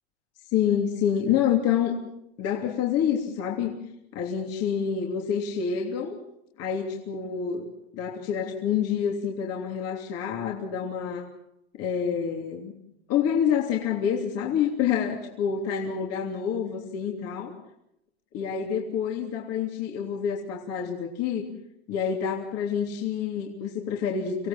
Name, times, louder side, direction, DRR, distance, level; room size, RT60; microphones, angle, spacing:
voice 1, 0.5-2.0 2.4-3.7 4.1-6.2 6.6-11.3 11.7-12.7 13.1-17.6 18.3-21.5 21.9-24.5, left 8 dB, 45° left, 1 dB, 3.2 m, -27 dB
26.5 x 17.5 x 7.5 m, 0.78 s
supercardioid pair, 130°, 34 cm